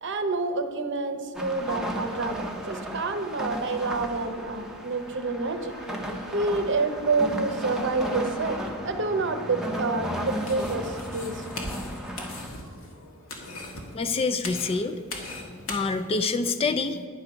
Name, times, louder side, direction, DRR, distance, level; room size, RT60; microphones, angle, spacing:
voice 1, 0.0-5.7 6.3-8.6 8.8-11.4, right 3 dB, 60° right, 8 dB, 0.7 m, -28 dB
sound 1, 1.3-12.5, equal, 5° right, 0.7 m, -35 dB
Wind instrument woodwind instrument, 5.4-10.5, left 1 dB, 55° left, 0.7 m, -43 dB
sound 2, 10.3-15.8, left 2 dB, 70° left, 1.5 m, -39 dB
voice 2, 13.9-15.0 15.7-17.1, left 4 dB, 30° left, 10 dB, 0.3 m, -26 dB
9.8 x 4.6 x 6.3 m, 2.1 s
head